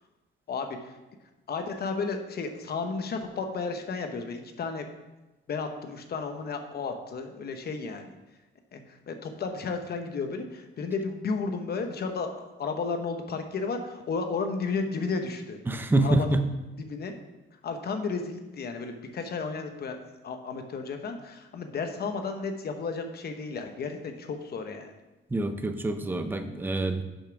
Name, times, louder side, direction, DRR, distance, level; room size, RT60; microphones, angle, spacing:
voice 1, 0.5-1.0 1.5-4.9 5.5-8.1 8.7-15.6 16.0-16.5 16.8-17.1 17.6-20.0 20.2-24.9, left 4 dB, 50° left, 6 dB, 0.9 m, -33 dB
voice 2, 15.7-16.4 25.3-27.0, right 2 dB, 10° right, 8 dB, 0.5 m, -26 dB
7.1 x 5.6 x 5.9 m, 1.1 s
wide cardioid pair, 170°, 21 cm